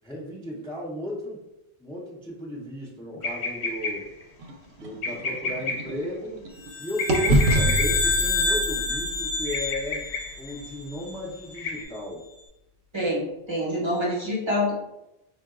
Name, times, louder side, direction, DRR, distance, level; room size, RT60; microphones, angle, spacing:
voice 1, 0.0-1.4 1.8-4.1 4.8-6.4 6.8-10.1 10.4-12.2, left 1 dB, 10° left, -6 dB, 0.3 m, -35 dB
sound 1, 3.2-4.2 5.0-6.1 7.0-8.2 9.4-10.5 11.5-11.8, left 3 dB, 75° left, 0.8 m, -31 dB
sound 2, 4.4-6.7 7.1-11.1, right 1 dB, 70° right, 0.8 m, -27 dB
sound 3, 6.7-11.2, left 3 dB, 45° left, 0.9 m, -28 dB
voice 2, 12.9-14.7, left 1 dB, 30° right, -5 dB, 0.7 m, -26 dB
3.8 x 2.2 x 2.3 m, 0.93 s
omnidirectional pair, 1.2 m